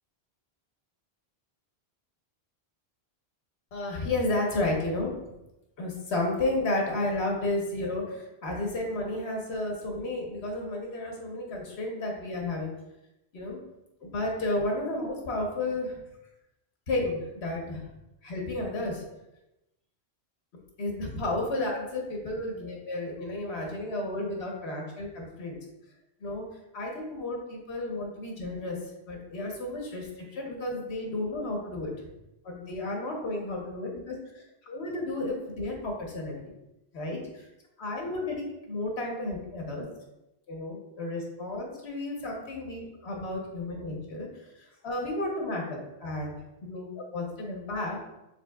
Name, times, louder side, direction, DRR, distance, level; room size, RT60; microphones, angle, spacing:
voice 1, 3.7-5.2 5.8-12.7 13.3-13.6 14.0-16.0 16.9-17.9 18.2-19.0 20.8-25.6 26.2-26.5 26.7-28.8 29.1-31.9 32.4-36.4 36.9-37.5 37.8-39.9 40.5-48.0, left 2 dB, 80° left, 0 dB, 1.3 m, -32 dB
5.6 x 3.9 x 2.3 m, 0.92 s
omnidirectional pair, 1.1 m